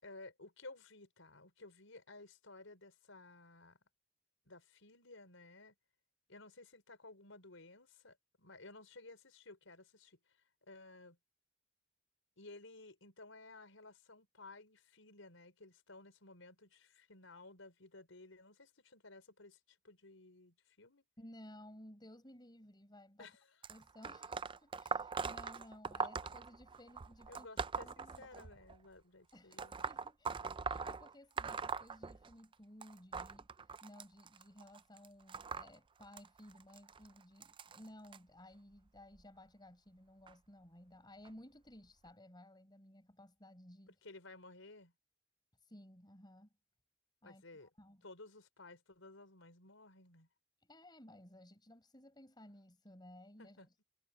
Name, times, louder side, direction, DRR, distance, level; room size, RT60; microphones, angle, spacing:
voice 1, 0.0-3.8 4.4-5.7 6.3-11.2 12.4-21.0 23.2-23.6 26.0-26.1 27.3-29.8 43.9-44.9 47.2-47.7 48.0-50.3 53.4-53.7, left 2 dB, 90° left, 4.8 m, -56 dB
voice 2, 21.2-23.3 23.7-27.5 27.8-28.5 29.3-43.9 45.6-46.5 47.2-47.4 47.8-48.0 50.6-53.8, left 1 dB, 20° left, 5.0 m, -57 dB
sound 1, 23.6-28.8 29.5-32.5 32.8-38.2 39.0-39.2 40.3-40.4 41.3-41.4 42.1-42.2, right 5 dB, 25° right, 0.4 m, -42 dB
head